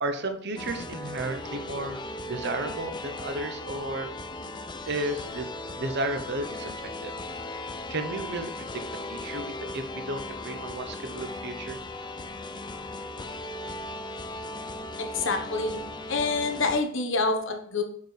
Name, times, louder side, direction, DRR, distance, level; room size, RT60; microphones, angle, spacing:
voice 1, 0.0-2.0 2.3-4.1 4.9-7.1 7.9-11.8, right 2 dB, 55° right, 6 dB, 0.9 m, -33 dB
sound 1, 0.6-16.8, left 2 dB, 20° left, 0.6 m, -37 dB
voice 2, 15.1-17.8, left 3 dB, 65° left, 4 dB, 1.3 m, -27 dB
7.0 x 6.6 x 3.4 m, 0.65 s
head